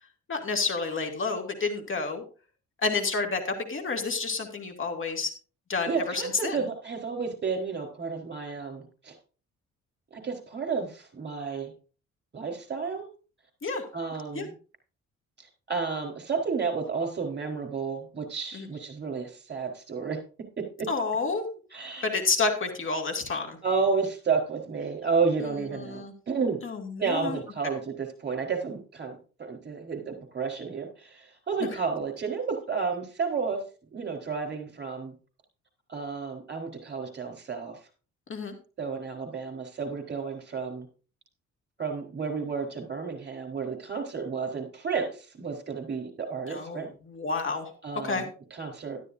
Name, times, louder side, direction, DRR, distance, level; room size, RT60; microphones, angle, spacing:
voice 1, 0.3-2.2 2.8-5.3 5.7-6.6 13.6-13.8 14.3-14.5 18.5-18.7 20.9-21.4 22.0-23.6 25.7-26.1 26.6-27.4 38.3-38.5 46.5-47.7 48.0-48.2, left 4 dB, 40° left, 3 dB, 2.6 m, -29 dB
voice 2, 5.9-9.1 10.1-11.7 12.3-13.1 13.9-14.6 15.4-20.2 20.6-20.9 21.7-22.1 23.6-26.6 27.0-33.6 33.9-35.1 35.9-37.8 38.8-40.9 41.8-46.9 47.8-49.0, right 5 dB, 35° right, 4 dB, 4.3 m, -31 dB
12.5 x 12.0 x 2.7 m, 0.36 s
cardioid pair, 90°, 30 cm